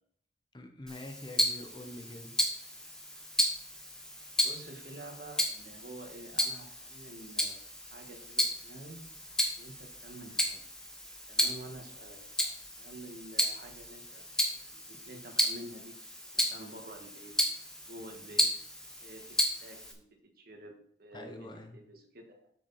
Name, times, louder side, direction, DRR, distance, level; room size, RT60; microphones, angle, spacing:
voice 1, 0.5-2.4 21.1-21.8, left 1 dB, 25° left, 4 dB, 0.8 m, -45 dB
Tick-tock, 0.9-19.9, equal, 5° left, 1.2 m, -34 dB
voice 2, 4.4-9.0 9.6-10.6 11.3-15.9 16.3-17.3 17.8-18.5 19.0-20.0 20.4-20.7 21.0-21.5 21.7-22.5, right 1 dB, 55° right, 3 dB, 1.6 m, -49 dB
8.4 x 6.2 x 4.2 m, 0.64 s
head